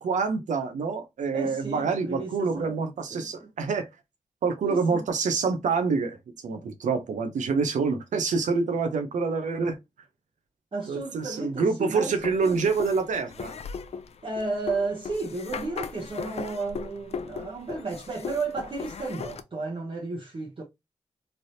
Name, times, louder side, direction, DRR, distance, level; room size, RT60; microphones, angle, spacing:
voice 1, 0.0-3.9 4.4-6.2 6.4-9.8 10.9-13.6, right 4 dB, 85° right, 0.6 m, -26 dB
voice 2, 1.3-2.8 3.1-3.5 4.6-5.1 10.7-12.7 14.2-20.6, right 3 dB, 45° right, 0.9 m, -33 dB
sound 1, 12.2-19.4, left 6 dB, 60° left, 0.4 m, -38 dB
3.3 x 2.6 x 2.7 m
cardioid pair, 50°, 12 cm